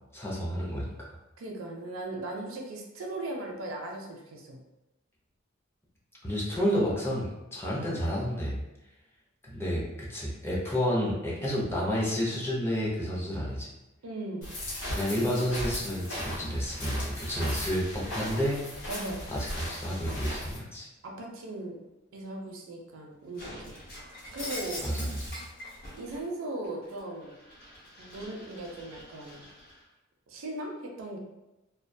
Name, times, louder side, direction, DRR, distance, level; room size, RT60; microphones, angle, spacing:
voice 1, 0.1-1.1 6.2-8.6 9.4-13.7 14.9-18.6 19.3-20.9 24.8-25.3, equal, 10° left, -5 dB, 0.5 m, -30 dB
voice 2, 1.4-4.6 14.0-14.5 18.9-19.2 21.0-21.8 22.1-23.8 24.3-24.9 25.9-27.3 28.0-29.4 30.3-31.2, right 2 dB, 70° right, 1 dB, 0.5 m, -38 dB
sound 1, 14.4-20.6, left 1 dB, 75° left, 1.0 m, -37 dB
Shatter, 23.4-26.2 26.6-29.8, left 1 dB, 50° left, 0.9 m, -43 dB
2.3 x 2.2 x 2.5 m, 0.98 s
head